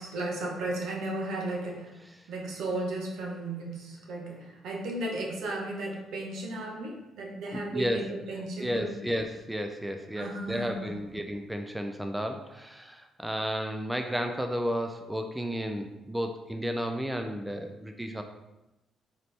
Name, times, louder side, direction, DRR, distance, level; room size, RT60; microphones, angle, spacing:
voice 1, 0.0-2.0 2.3-8.9 10.2-11.1, right 2 dB, 80° right, -1 dB, 0.8 m, -35 dB
voice 2, 7.5-8.1 8.6-18.2, equal, 5° right, 5 dB, 0.4 m, -33 dB
4.2 x 2.6 x 3.3 m, 0.95 s
cardioid pair, 90°, 0 cm